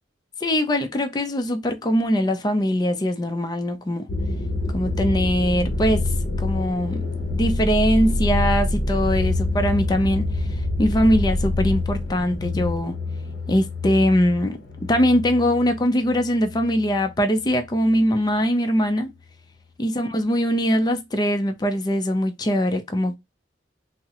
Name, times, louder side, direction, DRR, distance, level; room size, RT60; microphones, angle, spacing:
voice 1, 0.4-4.0 4.7-6.0 6.4-10.3 10.8-12.9 13.5-14.6 14.9-19.1 19.8-23.2, equal, 20° left, 0.4 m, -22 dB
sound 1, 4.1-17.1 17.4-18.0, left 2 dB, 60° left, 0.7 m, -26 dB
3.5 x 2.0 x 2.8 m
head